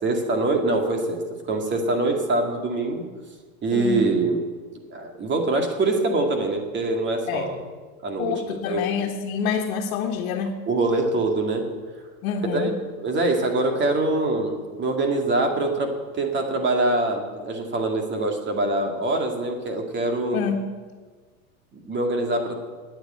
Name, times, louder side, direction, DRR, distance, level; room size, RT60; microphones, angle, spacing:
voice 1, 0.0-3.1 3.6-4.4 4.9-7.6 8.0-9.0 10.6-11.7 12.5-20.4 21.7-22.6, right 2 dB, 25° right, 3 dB, 2.3 m, -24 dB
voice 2, 3.7-4.1 7.3-7.5 8.2-10.5 12.2-12.7 20.3-20.6, left 7 dB, 65° left, -1 dB, 1.7 m, -27 dB
9.7 x 9.4 x 9.0 m, 1.4 s
supercardioid pair, 130°, 42 cm